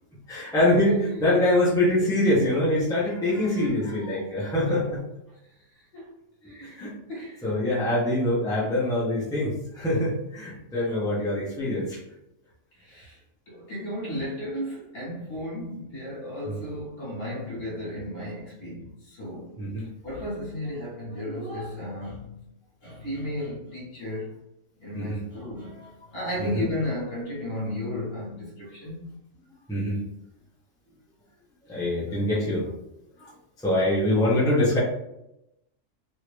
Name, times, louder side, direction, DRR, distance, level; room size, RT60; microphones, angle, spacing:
voice 1, 0.3-0.9 1.2-5.0 6.6-6.9 7.4-12.0 16.5-16.6 19.6-19.9 24.9-25.2 25.7-25.9 26.4-26.6 29.7-30.0 31.7-32.7 33.2-33.3 33.6-34.8, left 1 dB, 5° left, -7 dB, 0.9 m, -24 dB
voice 2, 0.8-1.2 4.6-4.8 5.5-6.1 6.4-7.4 12.7-13.2 13.5-19.5 20.0-22.4 22.8-24.4 24.8-29.2, left 1 dB, 50° left, -7 dB, 1.7 m, -34 dB
3.2 x 2.8 x 3.2 m, 0.84 s
omnidirectional pair, 1.3 m